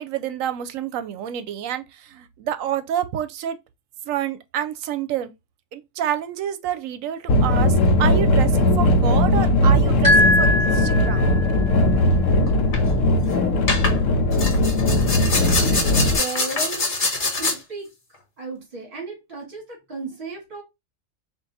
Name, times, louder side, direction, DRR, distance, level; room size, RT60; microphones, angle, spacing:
voice 1, 0.0-3.6 4.1-5.3 5.7-7.7 8.0-11.3, right 10 dB, 80° right, 1.0 m, -28 dB
sound 1, 7.3-16.2, left 1 dB, 75° left, 1.0 m, -19 dB
sound 2, 10.0-11.6, left 1 dB, 15° right, 1.7 m, -20 dB
sound 3, 12.5-12.8 13.7-14.0 14.3-17.6, left 3 dB, 40° left, 1.2 m, -24 dB
voice 2, 15.6-16.9 17.3-17.9 18.4-20.6, right 3 dB, 45° right, 1.8 m, -34 dB
3.6 x 2.6 x 4.0 m
omnidirectional pair, 1.4 m